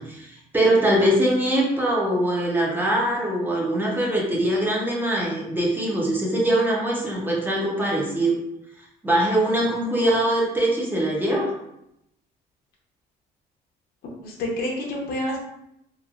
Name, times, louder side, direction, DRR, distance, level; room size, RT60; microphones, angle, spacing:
voice 1, 0.0-8.4 9.0-11.5, right 1 dB, 10° right, -3 dB, 0.7 m, -22 dB
voice 2, 9.6-10.0 14.2-15.4, left 1 dB, 65° left, -2 dB, 0.8 m, -29 dB
3.1 x 2.3 x 2.4 m, 0.81 s
cardioid pair, 110°, 17 cm